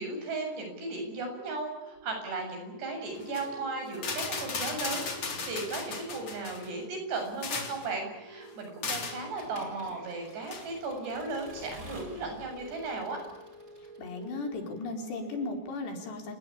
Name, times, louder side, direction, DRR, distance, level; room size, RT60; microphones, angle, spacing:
voice 1, 0.0-13.2, right 3 dB, 75° right, 4 dB, 9.5 m, -36 dB
sound 1, 1.2-15.5, right 2 dB, 55° right, 8.8 m, -50 dB
sound 2, 3.2-3.5 3.9-6.7 7.2-7.9 8.8-9.2 10.5-10.7, left 4 dB, 35° left, 4.2 m, -35 dB
Accelerating revving vroom / Mechanisms, 9.4-14.3, equal, 20° right, 5.1 m, -50 dB
voice 2, 14.0-16.3, left 3 dB, 75° left, 4 dB, 6.6 m, -36 dB
29.5 x 19.0 x 8.8 m, 0.99 s
omnidirectional pair, 4.9 m